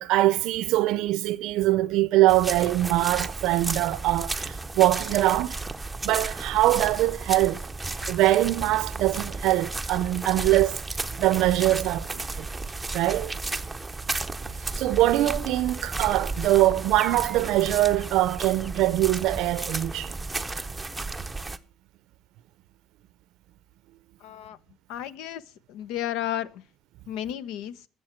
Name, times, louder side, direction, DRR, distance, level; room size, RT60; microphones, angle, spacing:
voice 1, 0.0-5.6 6.0-7.7 8.1-10.8 11.2-12.5 12.9-13.3 14.8-20.1, right 16 dB, 75° right, 0.5 m, -23 dB
sound 1, 2.3-21.6, right 3 dB, 10° right, 0.6 m, -33 dB
voice 2, 24.2-24.6 24.9-25.4 25.7-26.6 27.1-27.9, left 11 dB, 85° left, 0.8 m, -33 dB
20.5 x 7.1 x 4.4 m
cardioid pair, 130°, 0 cm